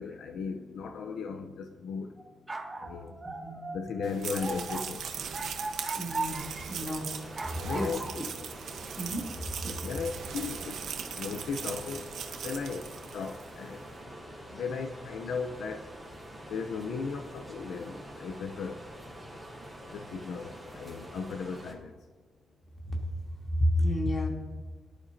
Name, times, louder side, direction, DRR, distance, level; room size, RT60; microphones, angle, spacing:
voice 1, 0.0-2.2 2.8-3.2 3.7-5.0 7.6-8.2 9.8-10.8 11.1-12.1 12.4-12.9 13.1-13.9 14.5-15.9 16.5-18.8 19.9-21.9, left 5 dB, 80° left, 6 dB, 0.7 m, -36 dB
sound 1, 2.2-6.7 7.3-8.1, right 2 dB, 20° right, 1.4 m, -38 dB
voice 2, 3.2-3.7 6.0-6.4 6.7-7.1 7.4-7.9 9.0-9.2 9.6-9.7 22.8-23.0 23.6-24.3, left 1 dB, 30° left, -1 dB, 3.2 m, -30 dB
sound 2, 4.0-13.6, right 7 dB, 75° right, 1.1 m, -39 dB
sound 3, 6.0-21.7, equal, ahead, 3.8 m, -46 dB
18.0 x 11.5 x 2.8 m, 1.4 s
cardioid pair, 105°, 0 cm